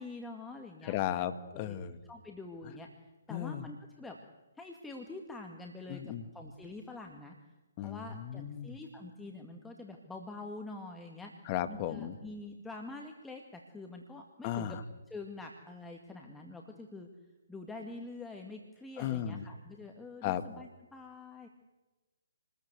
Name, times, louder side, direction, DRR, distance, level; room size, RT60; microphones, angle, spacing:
voice 1, 0.0-1.0 1.5-1.8 2.0-2.9 3.3-4.2 4.6-7.4 7.8-11.3 11.7-14.8 15.1-17.1 17.5-21.5, left 2 dB, 5° left, 2 dB, 2.1 m, -46 dB
voice 2, 0.8-2.0 3.3-3.7 5.9-6.2 7.8-8.8 11.5-12.2 14.4-14.8 19.0-19.4 20.2-20.4, left 11 dB, 30° left, 11 dB, 1.7 m, -35 dB
28.0 x 20.0 x 8.2 m, 1.1 s
figure-of-eight pair, 135°, 0 cm